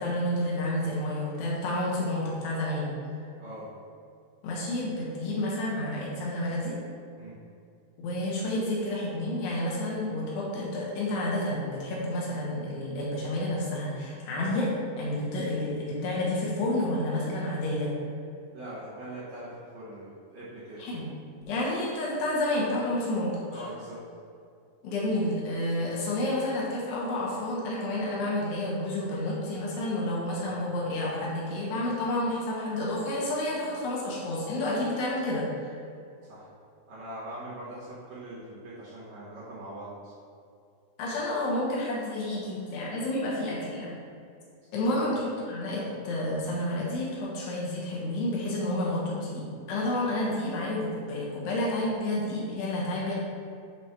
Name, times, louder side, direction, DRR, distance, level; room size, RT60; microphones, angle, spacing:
voice 1, 0.0-2.9 4.4-6.8 8.0-14.7 15.0-17.9 20.8-21.1 21.5-23.6 24.8-35.7 41.0-44.0 44.7-53.1, left 1 dB, 85° left, -5 dB, 3.3 m, -30 dB
voice 2, 3.4-3.7 7.2-7.4 18.5-20.9 23.5-24.0 30.4-30.5 36.2-36.5 36.9-40.1 44.8-45.1, right 1 dB, 60° right, -10 dB, 2.1 m, -42 dB
7.6 x 2.9 x 4.9 m, 2.4 s
omnidirectional pair, 4.7 m